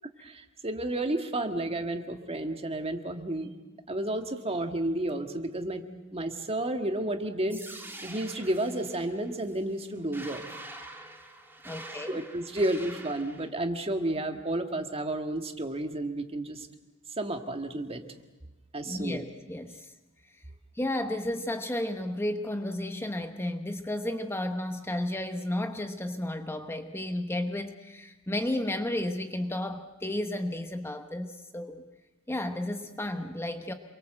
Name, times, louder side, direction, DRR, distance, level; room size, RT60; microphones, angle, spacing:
voice 1, 0.2-3.5 3.9-5.8 6.1-10.4 12.1-16.7 17.2-18.0 18.7-19.3, right 1 dB, 30° right, 6 dB, 1.8 m, -31 dB
sound 1, 7.5-13.5, right 2 dB, 10° right, 2.8 m, -45 dB
voice 2, 11.6-12.2 18.9-19.9 20.7-31.8 32.3-33.7, left 1 dB, 10° left, 7 dB, 1.0 m, -33 dB
28.0 x 23.0 x 7.8 m, 1.1 s
head